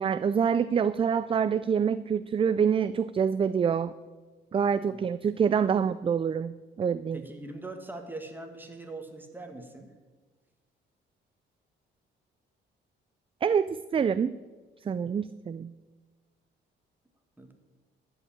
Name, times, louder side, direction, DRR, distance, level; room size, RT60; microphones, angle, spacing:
voice 1, 0.0-3.9 4.5-7.2 13.4-14.3 14.8-15.7, right 7 dB, 25° right, 15 dB, 0.3 m, -26 dB
voice 2, 7.1-9.9 17.4-17.5, right 2 dB, 10° right, 5 dB, 1.8 m, -42 dB
12.5 x 5.5 x 8.8 m, 1.3 s
cardioid pair, 90°, 20 cm